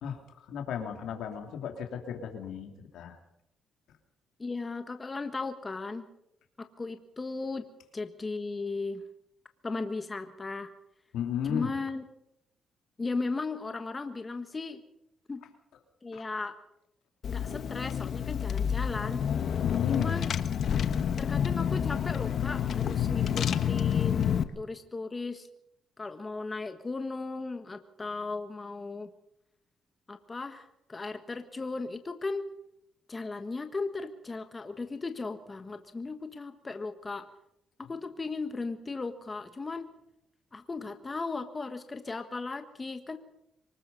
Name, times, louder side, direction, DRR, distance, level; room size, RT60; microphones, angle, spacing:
voice 1, 0.0-3.2 11.1-11.7 16.1-16.2 19.6-20.1, left 8 dB, 80° left, 4 dB, 2.9 m, -34 dB
voice 2, 4.4-6.1 6.6-7.7 7.9-9.0 9.6-10.7 11.5-12.0 13.0-14.8 15.3-15.4 16.0-16.5 17.2-19.2 19.9-20.3 21.2-25.5 26.0-29.1 30.1-32.5 33.1-37.3 37.8-39.9 40.5-43.2, left 3 dB, 25° left, 8 dB, 1.5 m, -36 dB
Car / Engine, 17.2-24.4, left 8 dB, 60° left, 1.3 m, -29 dB
24.5 x 20.0 x 5.6 m, 0.80 s
cardioid pair, 90°, 0 cm